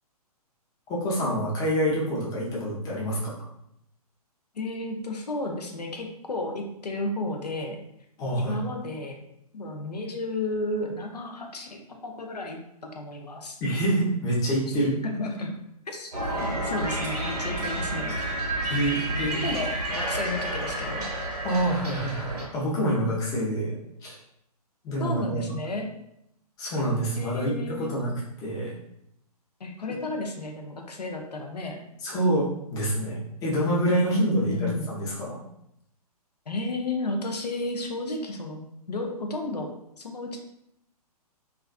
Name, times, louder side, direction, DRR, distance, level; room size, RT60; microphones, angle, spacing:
voice 1, 0.9-3.4 8.2-8.6 13.6-15.0 18.7-19.4 21.4-24.2 24.8-25.5 26.6-28.1 28.4-28.7 32.0-35.4, right 1 dB, 20° left, -5 dB, 0.6 m, -27 dB
voice 2, 4.5-7.8 8.4-9.2 9.5-13.6 15.1-15.5 15.9-16.1 16.4-18.1 19.4-21.1 25.0-25.9 27.2-28.1 29.6-31.8 34.1-34.9 36.5-39.7 40.0-40.4, left 2 dB, 85° left, 2 dB, 0.5 m, -32 dB
sound 1, 16.1-22.5, right 1 dB, 75° right, 0.8 m, -30 dB
2.4 x 2.3 x 2.3 m, 0.78 s
figure-of-eight pair, 125°, 20 cm